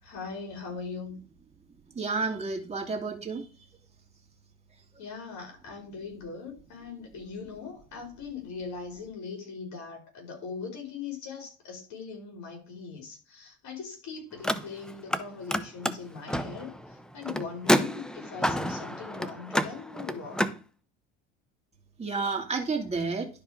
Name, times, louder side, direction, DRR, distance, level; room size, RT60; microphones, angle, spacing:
voice 1, 0.0-1.2 5.0-20.4, left 5 dB, 55° left, 5.2 m, -40 dB
voice 2, 2.0-3.4 22.0-23.3, right 4 dB, 20° right, 2.6 m, -30 dB
Car, 14.3-15.2 15.5-20.6, equal, ahead, 0.6 m, -29 dB
11.5 x 4.6 x 5.2 m
supercardioid pair, 105°, 35 cm